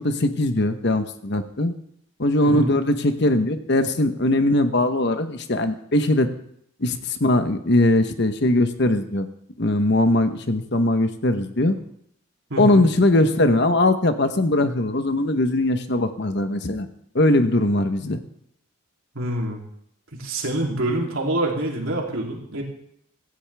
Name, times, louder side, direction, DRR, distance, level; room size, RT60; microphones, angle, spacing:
voice 1, 0.0-1.7 2.2-6.3 6.8-9.3 9.6-11.8 12.6-16.9 17.1-18.2, left 1 dB, 50° left, 9 dB, 1.0 m, -20 dB
voice 2, 2.4-2.7 12.5-12.8 19.1-19.6 20.1-22.6, right 1 dB, 75° right, -1 dB, 3.2 m, -26 dB
16.5 x 14.5 x 3.5 m, 0.69 s
head